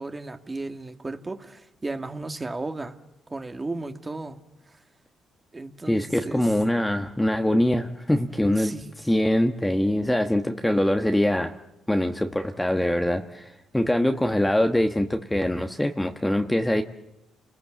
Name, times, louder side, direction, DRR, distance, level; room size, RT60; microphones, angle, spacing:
voice 1, 0.0-3.0 3.3-4.4 5.5-6.4 8.6-8.9, right 2 dB, 20° right, 6 dB, 2.0 m, -34 dB
voice 2, 5.9-8.7 9.0-11.5 11.9-16.8, left 1 dB, 10° left, 5 dB, 1.2 m, -23 dB
29.0 x 20.0 x 7.5 m, 0.92 s
cardioid pair, 90°, 0 cm